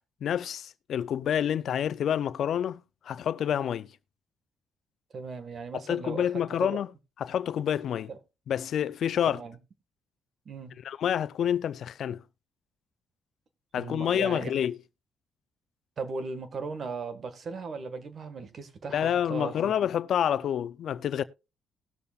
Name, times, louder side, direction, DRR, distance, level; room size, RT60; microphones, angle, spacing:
voice 1, 0.2-3.9 5.7-6.9 7.2-8.1 8.5-9.4 10.8-12.2 13.7-14.8 18.9-21.2, left 9 dB, 65° left, 0.5 m, -28 dB
voice 2, 5.1-6.3 6.6-6.8 8.1-8.2 9.3-9.6 10.4-10.7 13.8-14.5 16.0-19.7, right 4 dB, 50° right, 1.6 m, -37 dB
19.0 x 6.8 x 2.4 m
cardioid pair, 90°, 0 cm